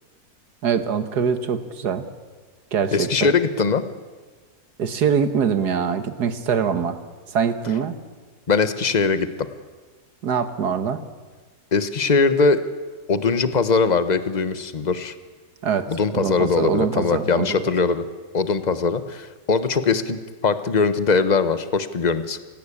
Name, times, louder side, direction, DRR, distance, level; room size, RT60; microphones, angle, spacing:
voice 1, 0.6-2.1 2.7-3.3 4.8-7.0 7.3-8.0 10.2-11.0 15.6-15.9 16.1-17.6, right 7 dB, 75° right, 10 dB, 1.9 m, -23 dB
voice 2, 2.9-3.8 8.5-9.3 11.7-12.6 13.1-15.1 15.9-18.1 18.3-22.4, left 4 dB, 30° left, 12 dB, 1.1 m, -21 dB
28.5 x 17.0 x 8.6 m, 1.4 s
omnidirectional pair, 1.7 m